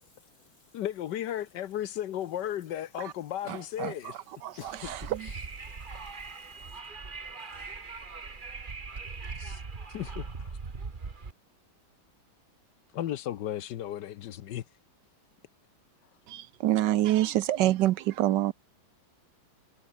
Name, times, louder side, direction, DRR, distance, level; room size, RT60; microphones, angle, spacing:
voice 1, 0.0-0.8 3.5-3.6 4.5-5.1 5.6-6.8, left 12 dB, 90° left, 0.8 m, -50 dB
voice 2, 0.7-4.2 9.4-9.6 9.9-10.5 12.9-14.6, left 11 dB, 65° left, 1.3 m, -35 dB
voice 3, 3.5-5.3 16.3-18.5, right 14 dB, 70° right, 1.1 m, -27 dB
Wind, 4.7-11.3, right 4 dB, 25° right, 1.5 m, -40 dB
omnidirectional pair, 2.2 m